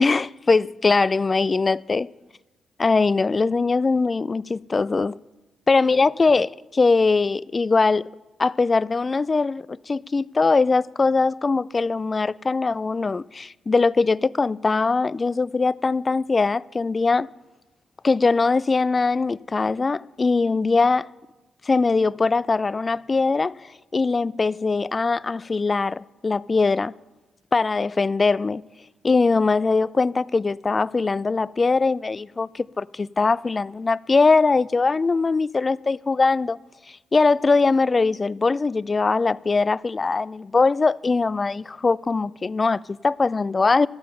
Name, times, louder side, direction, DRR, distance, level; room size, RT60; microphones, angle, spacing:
voice 1, 0.0-2.1 2.8-5.2 5.7-8.1 8.4-17.3 18.0-21.1 21.7-26.9 27.5-28.6 29.0-36.6 36.9-43.9, left 4 dB, 40° left, 0.4 m, -21 dB
15.0 x 12.5 x 5.8 m
hypercardioid pair, 40°, 0 cm